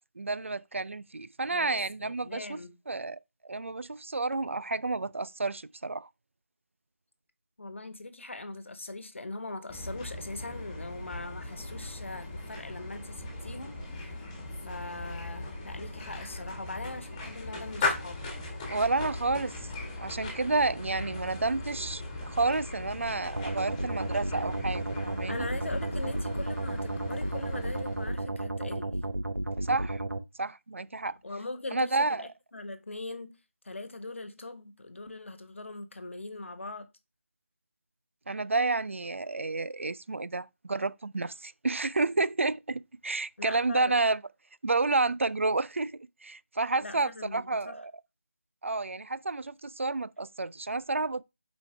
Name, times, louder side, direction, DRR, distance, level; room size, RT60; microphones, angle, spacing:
voice 1, 0.2-2.6 2.9-6.1 18.7-19.5 20.0-25.5 29.7-30.0 30.4-31.2 31.7-32.2 38.3-44.2 44.6-45.9 46.2-47.9 48.6-51.2, right 3 dB, 60° right, 0.4 m, -30 dB
voice 2, 1.5-2.7 7.6-14.3 14.6-18.2 25.3-29.0 31.2-33.3 33.6-36.9 43.4-44.0 46.8-47.8, left 2 dB, 60° left, 1.3 m, -41 dB
sound 1, 9.7-28.3, left 2 dB, 15° left, 1.7 m, -38 dB
sound 2, 23.4-30.2, right 2 dB, 90° right, 1.0 m, -33 dB
6.8 x 5.1 x 3.4 m
figure-of-eight pair, 160°, 8 cm